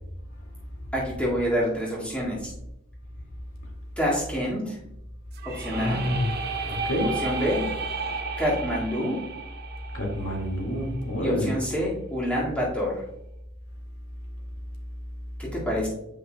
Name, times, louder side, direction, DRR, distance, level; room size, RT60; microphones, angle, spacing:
voice 1, 0.9-2.5 4.0-4.8 5.4-6.0 7.0-7.6 8.4-9.2 11.2-13.0 15.4-15.9, equal, 5° left, -7 dB, 2.0 m, -27 dB
sound 1, 5.3-11.2, right 4 dB, 45° right, 0.7 m, -34 dB
voice 2, 5.7-6.3 6.6-7.1 9.9-11.5, left 1 dB, 80° left, 0 dB, 2.1 m, -28 dB
9.8 x 5.6 x 2.2 m, 0.82 s
head